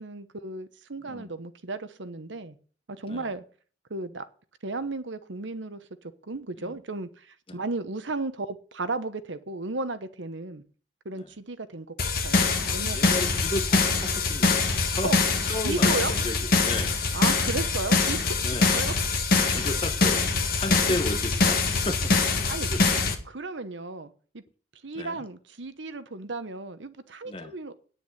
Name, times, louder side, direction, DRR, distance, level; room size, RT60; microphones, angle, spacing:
voice 1, 0.0-2.6 3.0-3.4 3.9-4.2 4.6-5.9 6.3-10.6 11.0-13.0 15.0-15.2 15.6-16.1 17.1-18.4 18.7-18.9 20.8-21.0 22.5-22.7 23.3-24.4 24.8-27.7, right 3 dB, 75° right, 1.0 m, -34 dB
sound 1, 12.0-23.1, left 4 dB, 50° left, 1.8 m, -24 dB
voice 2, 12.9-15.1 15.5-17.0 18.4-18.7 19.3-20.3 20.6-22.1 22.6-23.0 24.9-25.2 27.3-27.5, left 1 dB, 30° left, 1.0 m, -34 dB
9.8 x 6.9 x 8.3 m
head